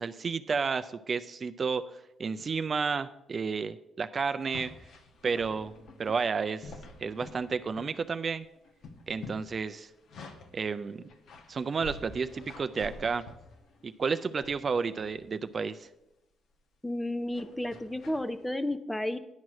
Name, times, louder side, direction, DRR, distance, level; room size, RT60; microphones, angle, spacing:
voice 1, 0.0-1.8 2.2-4.7 5.2-5.7 6.0-6.7 7.0-8.5 9.1-9.9 10.5-11.0 11.5-13.2 13.8-15.9, right 5 dB, 40° right, 11 dB, 0.4 m, -31 dB
sound 1, 4.4-8.3 8.6-10.6 11.1-13.9 14.4-15.1 15.6-15.9 17.3-18.3, left 2 dB, 70° left, 1.1 m, -48 dB
voice 2, 16.8-19.2, left 1 dB, 10° left, 13 dB, 0.6 m, -32 dB
10.5 x 4.7 x 7.4 m, 0.93 s
cardioid pair, 90°, 0 cm